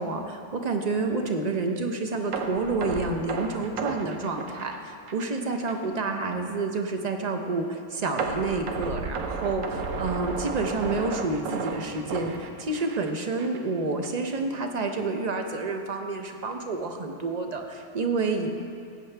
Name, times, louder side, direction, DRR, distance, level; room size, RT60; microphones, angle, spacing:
voice 1, 0.0-18.5, right 3 dB, 40° right, 4 dB, 0.7 m, -29 dB
sound 1, 2.3-5.4 5.7-5.8 6.3-6.4 8.2-13.1 13.4-13.6 14.0-14.1, right 4 dB, 75° right, 1.2 m, -33 dB
14.0 x 8.5 x 3.4 m, 2.4 s
omnidirectional pair, 1.4 m